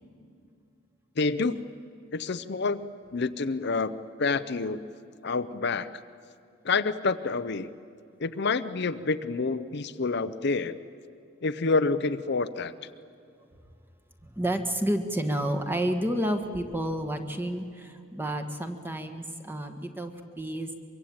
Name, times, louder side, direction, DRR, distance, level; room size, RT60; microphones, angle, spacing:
voice 1, 1.2-1.6 2.1-3.9 4.2-4.8 5.2-5.9 6.6-7.7 8.2-10.8 11.4-12.7, left 4 dB, 55° left, 11 dB, 0.7 m, -28 dB
voice 2, 14.2-20.7, right 1 dB, 10° right, 6 dB, 1.5 m, -30 dB
24.0 x 23.0 x 8.8 m, 2.4 s
head